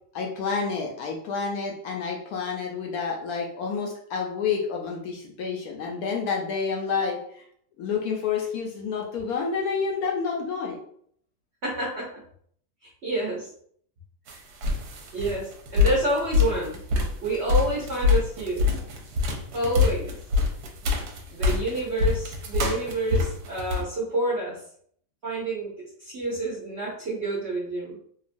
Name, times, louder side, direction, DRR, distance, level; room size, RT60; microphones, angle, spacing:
voice 1, 0.1-7.4 7.8-10.8, left 5 dB, 70° left, -1 dB, 1.0 m, -29 dB
voice 2, 11.6-12.0 13.0-13.5 14.3-14.4 15.1-16.8 17.2-18.7 19.5-20.1 21.3-24.6 25.2-25.7 26.0-28.0, right 2 dB, 60° right, -5 dB, 0.7 m, -28 dB
sound 1, 14.3-14.4 14.6-23.8, left 5 dB, 75° right, 1.1 m, -24 dB
2.9 x 2.3 x 2.5 m, 0.63 s
omnidirectional pair, 1.8 m